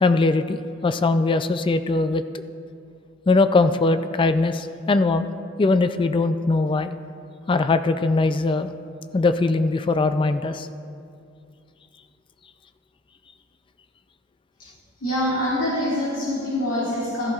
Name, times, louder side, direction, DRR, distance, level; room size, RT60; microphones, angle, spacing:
voice 1, 0.0-2.2 3.3-5.3 5.6-6.9 7.5-8.7 9.1-10.7, left 3 dB, 25° left, 10 dB, 0.3 m, -21 dB
voice 2, 15.0-17.3, left 1 dB, 75° left, -8 dB, 2.4 m, -25 dB
15.5 x 14.0 x 2.4 m, 2.4 s
head